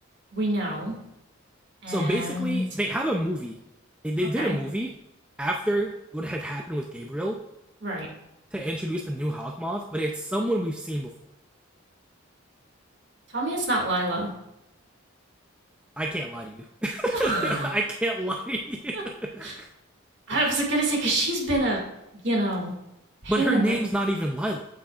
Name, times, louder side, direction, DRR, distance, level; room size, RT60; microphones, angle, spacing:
voice 1, 0.3-0.9 1.8-2.6 4.4-4.6 7.8-8.1 13.3-14.3 17.2-17.7 19.4-19.6 20.3-21.8 22.2-22.7 23.2-23.8, right 1 dB, 55° right, -1 dB, 2.3 m, -26 dB
voice 2, 1.9-3.6 4.0-4.9 5.4-7.4 8.5-11.1 16.0-19.7 20.3-20.4 23.3-24.6, right 1 dB, 5° right, 1 dB, 0.5 m, -28 dB
8.5 x 8.1 x 2.5 m, 0.89 s
head